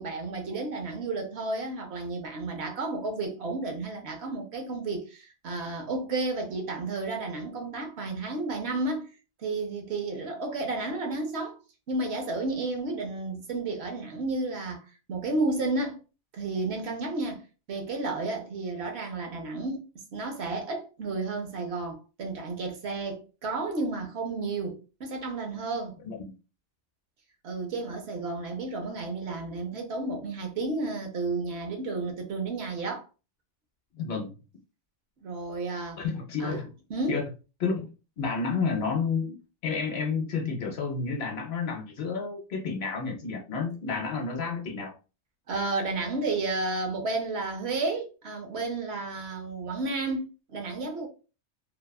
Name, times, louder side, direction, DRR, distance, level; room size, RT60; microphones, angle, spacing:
voice 1, 0.0-9.1 9.4-11.6 11.9-14.8 15.1-16.0 16.3-17.4 17.7-19.9 20.1-26.0 27.4-33.1 35.2-36.0 36.4-36.6 36.9-37.2 45.5-51.1, right 3 dB, 65° right, 0.9 m, -32 dB
voice 2, 33.9-34.3 36.0-36.7 37.1-37.3 37.6-37.9 38.2-39.3 39.6-45.0, left 5 dB, 65° left, 0.8 m, -30 dB
2.7 x 2.3 x 2.2 m
omnidirectional pair, 1.2 m